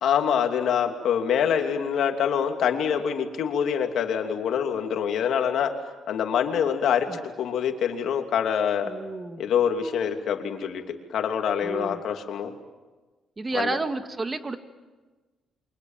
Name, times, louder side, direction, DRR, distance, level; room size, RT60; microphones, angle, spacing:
voice 1, 0.0-5.7 6.1-8.9 9.4-12.5 13.5-13.8, left 8 dB, 75° left, 4 dB, 2.9 m, -25 dB
voice 2, 8.8-9.5 11.6-12.0 13.4-14.6, right 3 dB, 25° right, 8 dB, 2.0 m, -31 dB
28.5 x 24.5 x 7.5 m, 1.3 s
cardioid pair, 90°, 0 cm